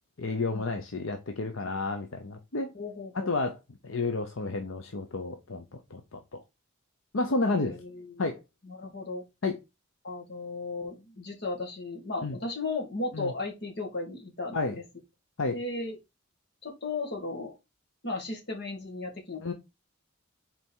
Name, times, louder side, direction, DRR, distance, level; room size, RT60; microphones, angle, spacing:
voice 1, 0.2-2.7 3.1-3.6 3.8-6.4 7.1-7.8 8.2-8.4 9.4-9.6 12.2-12.4 13.1-13.3 14.5-14.8 15.4-15.6 19.4-19.5, left 3 dB, 70° left, 0.8 m, -31 dB
voice 2, 2.7-3.3 7.5-8.2 8.6-9.2 10.0-14.8 15.5-16.0 16.6-17.6 18.0-19.5, left 3 dB, 50° left, 2.0 m, -36 dB
5.5 x 4.4 x 4.6 m
head